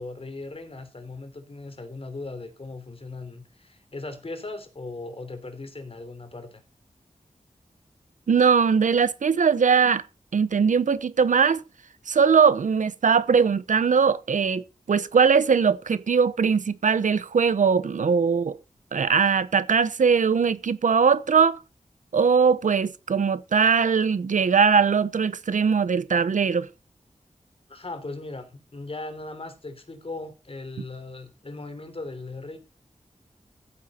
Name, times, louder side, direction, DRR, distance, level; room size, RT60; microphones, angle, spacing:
voice 1, 0.0-6.6 27.7-32.6, left 2 dB, 50° left, 3.3 m, -38 dB
voice 2, 8.3-10.0 10.3-11.6 12.1-14.6 14.9-18.6 18.9-21.6 22.1-26.7, right 6 dB, 90° right, 0.9 m, -20 dB
15.0 x 9.2 x 4.3 m
wide cardioid pair, 60°, 13 cm